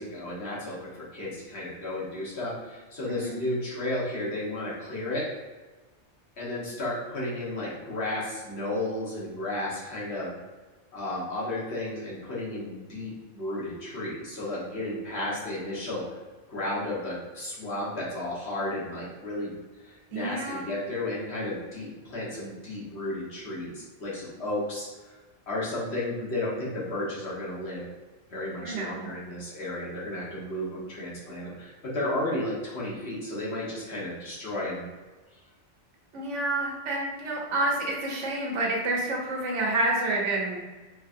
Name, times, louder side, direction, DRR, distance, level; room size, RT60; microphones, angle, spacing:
voice 1, 0.0-5.3 6.4-10.3 10.9-16.0 16.5-19.5 19.8-24.9 25.5-27.8 28.3-34.8, left 1 dB, 65° left, -7 dB, 1.5 m, -33 dB
voice 2, 3.1-3.4 20.1-20.7 28.6-29.1 36.1-40.6, right 2 dB, 80° right, -1 dB, 1.2 m, -29 dB
4.5 x 2.9 x 2.6 m, 1.3 s
omnidirectional pair, 1.2 m